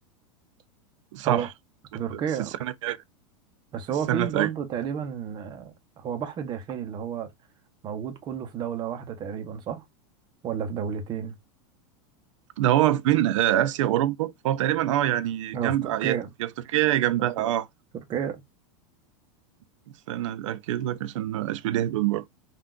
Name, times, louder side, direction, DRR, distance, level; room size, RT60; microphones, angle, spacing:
voice 1, 1.1-1.5 2.1-3.0 4.1-4.5 12.6-17.7 20.1-22.2, right 13 dB, 75° right, 0.5 m, -25 dB
voice 2, 1.9-2.5 3.7-7.3 7.8-9.8 10.4-11.3 15.5-16.3 17.4-17.5 18.1-18.4, right 8 dB, 30° right, 0.7 m, -31 dB
3.6 x 2.4 x 2.3 m
supercardioid pair, 135°, 16 cm